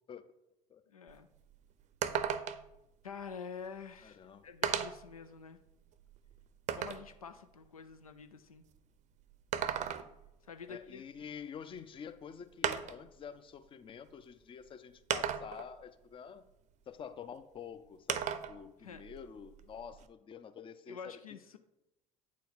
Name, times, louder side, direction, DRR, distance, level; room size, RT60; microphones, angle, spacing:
voice 1, 0.9-1.3 3.0-5.6 6.7-8.6 10.4-11.0 18.8-19.0 20.9-21.6, left 6 dB, 85° left, 9 dB, 0.4 m, -47 dB
sound 1, 1.1-1.2 1.5-1.6 2.0-2.8 3.8-3.9 4.6-5.1 5.7-7.1 9.3-10.3 11.8-11.9 12.6-13.1 14.1-14.2 15.1-15.7 18.1-18.6 18.9-20.0, right 9 dB, 45° right, 0.6 m, -35 dB
voice 2, 4.0-4.5 10.7-16.4 16.9-21.2, left 7 dB, 30° left, 12 dB, 0.6 m, -48 dB
8.5 x 4.1 x 4.1 m, 0.89 s
figure-of-eight pair, 60°, 18 cm